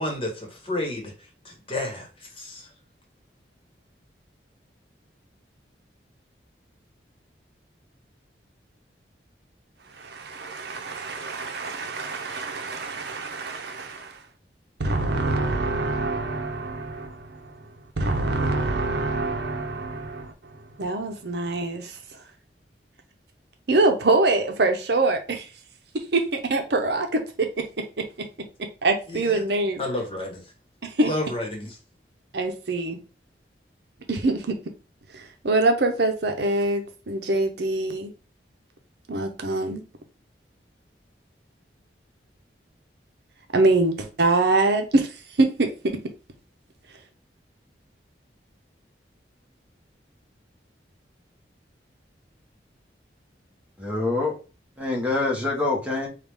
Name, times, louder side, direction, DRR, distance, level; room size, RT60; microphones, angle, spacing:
voice 1, 0.0-2.7 29.1-29.4 29.8-30.5 31.0-31.8, left 1 dB, 30° left, 1.2 m, -31 dB
voice 2, 10.0-14.2 14.8-17.5 18.0-20.3 20.8-22.0 23.7-25.5 25.9-28.3 28.8-29.8 30.8-31.1 32.3-33.0 34.1-34.5 35.1-38.1 39.1-39.8 43.5-45.1 45.4-45.7, right 2 dB, 65° right, 0.7 m, -24 dB
voice 3, 53.8-54.4 54.8-56.1, left 2 dB, 10° right, 1.2 m, -25 dB
4.8 x 2.4 x 3.5 m
head